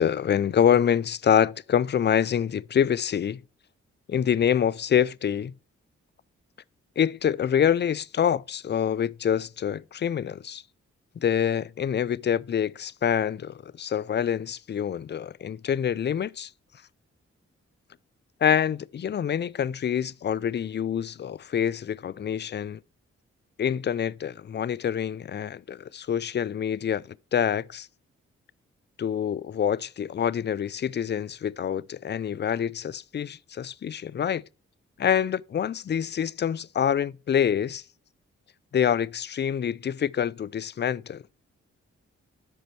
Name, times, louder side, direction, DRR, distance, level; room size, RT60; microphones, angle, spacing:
voice 1, 0.0-3.4 4.1-5.5 7.0-10.6 11.2-16.5 18.4-22.8 23.6-27.0 27.3-27.9 29.0-34.4 35.0-37.8 38.7-41.2, left 8 dB, 40° left, 0.4 m, -26 dB
12.5 x 5.2 x 3.2 m
supercardioid pair, 40°, 29 cm